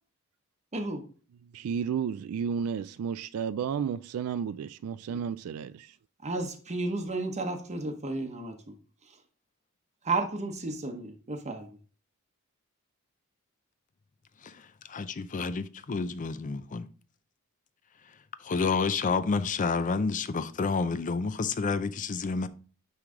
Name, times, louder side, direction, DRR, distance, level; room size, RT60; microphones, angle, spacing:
voice 1, 0.7-1.0 6.2-8.7 9.0-9.2 10.0-11.8, right 2 dB, 30° right, 0.9 m, -33 dB
voice 2, 1.5-6.0, right 7 dB, 75° right, 0.3 m, -32 dB
voice 3, 14.9-16.8 18.4-22.5, left 4 dB, 35° left, 0.4 m, -29 dB
9.4 x 3.3 x 3.7 m
head